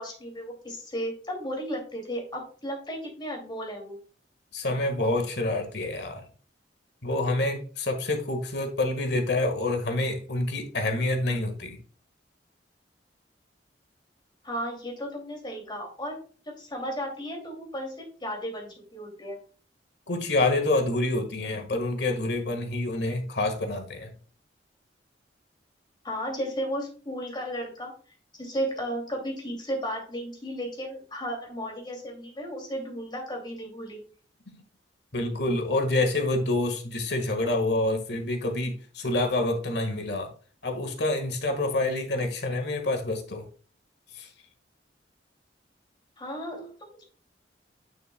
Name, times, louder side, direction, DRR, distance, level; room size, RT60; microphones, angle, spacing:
voice 1, 0.0-4.0 14.4-19.4 26.0-27.9 28.3-34.0 46.2-47.0, equal, 25° left, 2 dB, 2.5 m, -34 dB
voice 2, 4.5-6.2 7.0-11.8 20.1-24.1 34.5-34.6 35.1-40.3 40.6-43.4 44.1-44.3, left 2 dB, 65° left, 5 dB, 1.6 m, -27 dB
9.3 x 6.5 x 2.2 m, 0.40 s
head